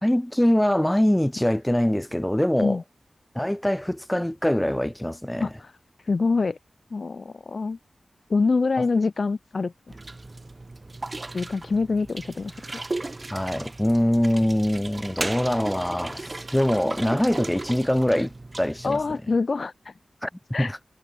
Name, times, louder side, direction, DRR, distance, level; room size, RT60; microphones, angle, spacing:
voice 1, 0.0-2.8 3.3-5.5 8.8-8.9 13.3-19.0 20.2-20.3 20.6-20.8, left 1 dB, 5° left, 1.3 m, -23 dB
voice 2, 5.4-5.7 6.1-6.6 6.9-7.8 8.3-10.0 11.3-12.5 18.8-19.9 20.5-20.7, left 4 dB, 50° left, 0.7 m, -25 dB
sound 1, 9.9-19.1, right 2 dB, 30° right, 1.0 m, -36 dB
wide cardioid pair, 120°, 0 cm